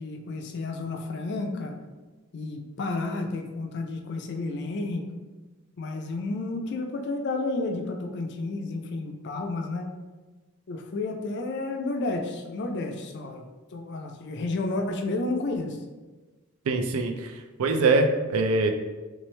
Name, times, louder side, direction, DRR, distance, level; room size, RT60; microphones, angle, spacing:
voice 1, 0.0-1.8 2.3-5.1 5.8-9.9 10.7-13.4 13.7-15.8, left 2 dB, 50° left, 4 dB, 0.4 m, -31 dB
voice 2, 16.7-17.3 17.6-18.7, right 3 dB, 70° right, 5 dB, 0.4 m, -23 dB
3.3 x 3.0 x 3.2 m, 1.2 s
head